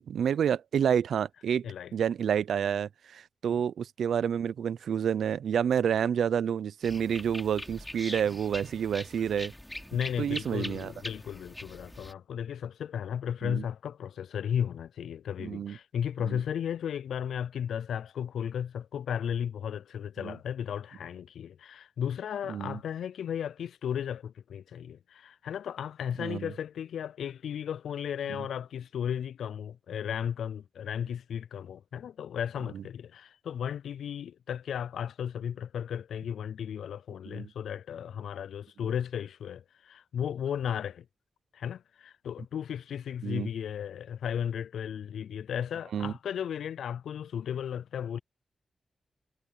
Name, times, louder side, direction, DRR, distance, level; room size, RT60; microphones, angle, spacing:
voice 1, 0.0-1.7 1.9-9.5 10.2-10.9 13.4-13.6 15.4-15.8 16.2-16.4 20.2-20.3 22.5-22.8 26.2-26.5 32.7-32.8 37.3-37.5 43.2-43.5 45.9-46.1, right 8 dB, 85° right, 0.6 m, -29 dB
sound 1, 6.8-12.1, left 1 dB, 10° left, 2.9 m, -42 dB
voice 2, 9.9-41.1 41.5-48.2, left 8 dB, 85° left, 0.3 m, -35 dB
supercardioid pair, 45°, 0 cm